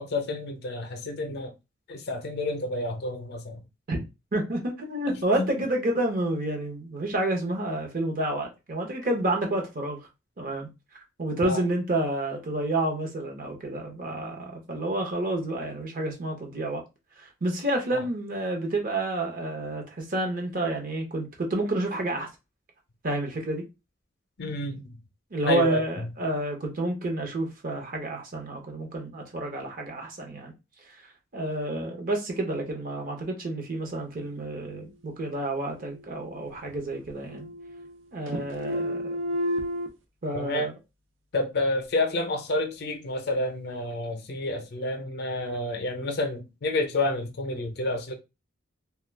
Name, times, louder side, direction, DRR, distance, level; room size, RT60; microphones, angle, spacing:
voice 1, 0.0-1.5 1.9-3.6 5.1-5.5 11.4-11.6 17.9-18.0 24.4-25.0 25.5-26.1 40.3-40.7 41.3-48.1, left 2 dB, 60° left, 0.5 m, -29 dB
voice 2, 4.3-10.0 10.4-10.7 11.2-16.8 17.2-22.3 23.0-23.6 25.3-30.5 31.3-37.5 38.1-39.0 40.2-40.7, right 1 dB, 45° right, 0.7 m, -29 dB
sound 1, 35.8-36.8 37.1-38.0 38.3-39.9, equal, 85° right, 0.5 m, -32 dB
2.2 x 2.2 x 3.2 m
head